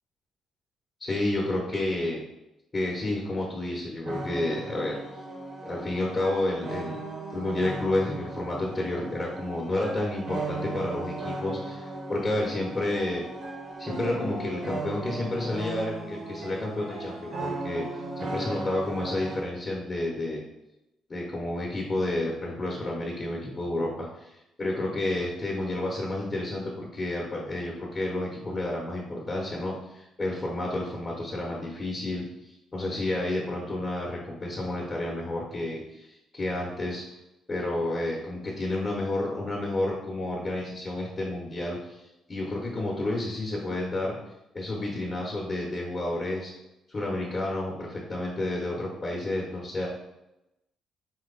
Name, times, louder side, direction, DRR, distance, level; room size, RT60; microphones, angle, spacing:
voice 1, 1.0-2.2 2.7-5.0 5.6-7.0 7.3-13.2 13.8-20.4 21.1-37.0 37.5-44.2 44.5-46.5 46.9-49.9, left 1 dB, 25° left, -3 dB, 0.9 m, -30 dB
sound 1, 4.1-19.5, right 2 dB, 45° right, 1.0 m, -36 dB
4.5 x 2.9 x 4.0 m, 0.91 s
cardioid pair, 135°, 0 cm